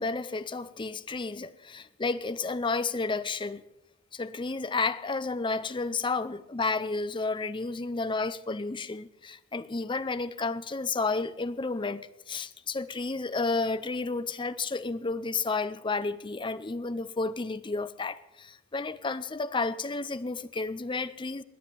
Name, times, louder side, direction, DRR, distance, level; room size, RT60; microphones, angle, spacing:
voice 1, 0.0-3.6 4.1-21.4, left 3 dB, 25° left, 0.6 m, -31 dB
21.5 x 7.9 x 6.9 m
head